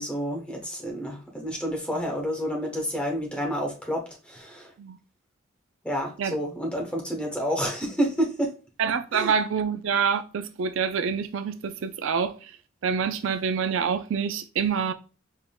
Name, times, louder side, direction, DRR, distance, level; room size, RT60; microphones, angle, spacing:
voice 1, 0.0-4.7 5.8-8.5 9.1-9.3, equal, 5° left, 0.9 m, -29 dB
voice 2, 8.8-12.5 12.8-14.9, right 6 dB, 75° right, 0.4 m, -26 dB
5.5 x 3.5 x 2.2 m
head